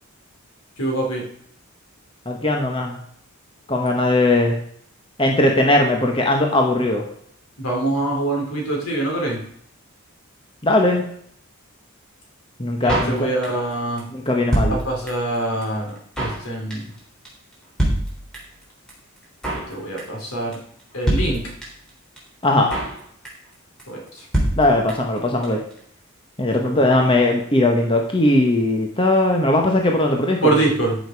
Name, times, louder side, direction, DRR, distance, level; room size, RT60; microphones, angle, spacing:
voice 1, 0.8-1.2 7.6-9.4 12.8-14.0 14.7-16.8 19.5-20.6 20.9-21.4 23.9-24.2 26.6-26.8 30.4-31.0, right 2 dB, 80° left, -1 dB, 4.0 m, -24 dB
voice 2, 2.2-3.0 3.7-4.6 5.2-7.0 10.6-11.0 12.6-13.3 14.1-14.8 22.4-22.7 24.6-25.6 26.4-30.5, left 1 dB, 25° left, 1 dB, 1.2 m, -19 dB
Drum kit, 12.9-13.7 14.0-14.1 14.2-15.3 15.6-15.7 15.9-16.4 16.7-17.0 17.2-17.3 17.5-17.6 17.8-18.6 18.9-19.0 19.2-19.7 20.0-20.3 20.5-20.6 20.8-20.9 21.1-21.9 22.2-22.3 22.4-23.0 23.2-23.5 23.8-23.9 24.1-24.2 24.3-25.2 25.4-25.5 25.7-25.8, right 1 dB, 5° left, 3.5 m, -24 dB
13.5 x 6.5 x 4.7 m, 0.64 s
head